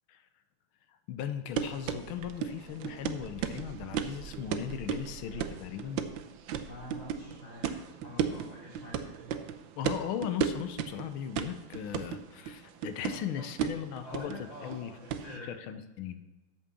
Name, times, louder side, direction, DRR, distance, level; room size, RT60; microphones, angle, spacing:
voice 1, 0.9-6.1 9.8-14.9 15.4-16.2, left 9 dB, 85° left, 10 dB, 1.6 m, -38 dB
sound 1, 1.5-15.4, right 8 dB, 75° right, 1.4 m, -35 dB
voice 2, 6.6-9.1 13.0-13.5 14.0-15.5, left 2 dB, 35° left, -11 dB, 3.6 m, -46 dB
8.4 x 6.4 x 7.0 m, 1.1 s
omnidirectional pair, 2.3 m